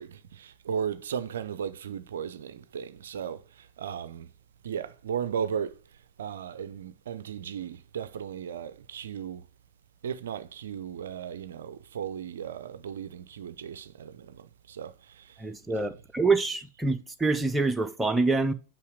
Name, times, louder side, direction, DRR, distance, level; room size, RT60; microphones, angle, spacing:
voice 1, 0.0-4.3 4.6-5.8 6.2-9.4 10.0-15.4 15.7-15.9, right 8 dB, 65° right, 0.4 m, -36 dB
voice 2, 15.4-18.5, right 3 dB, 10° right, 0.5 m, -26 dB
5.6 x 5.1 x 6.1 m
figure-of-eight pair, 90°, 0 cm